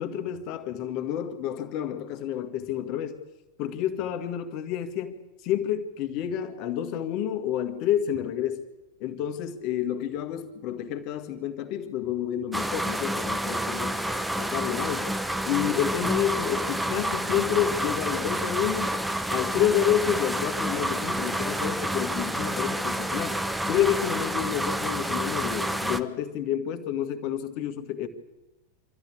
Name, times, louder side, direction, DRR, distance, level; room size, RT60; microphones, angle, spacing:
voice 1, 0.0-3.2 3.6-8.6 9.0-15.1 15.5-19.0 19.3-28.1, left 10 dB, 40° left, 7 dB, 1.9 m, -29 dB
sound 1, 12.5-26.0, right 1 dB, 5° right, 0.9 m, -29 dB
25.0 x 13.5 x 8.6 m, 1.1 s
figure-of-eight pair, 90°, 0 cm